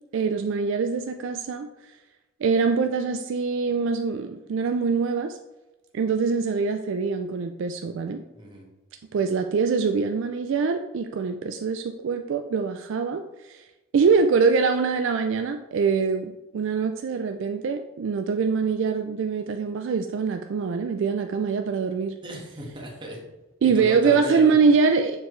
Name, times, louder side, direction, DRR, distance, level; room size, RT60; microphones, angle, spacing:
voice 1, 0.1-1.7 2.4-5.4 5.9-8.2 9.1-13.6 13.9-22.2 23.6-25.3, right 5 dB, 65° right, 7 dB, 0.4 m, -24 dB
voice 2, 8.3-8.7 22.2-23.2 23.6-24.5, equal, 25° right, -2 dB, 1.5 m, -36 dB
6.9 x 4.3 x 3.2 m, 1.0 s
head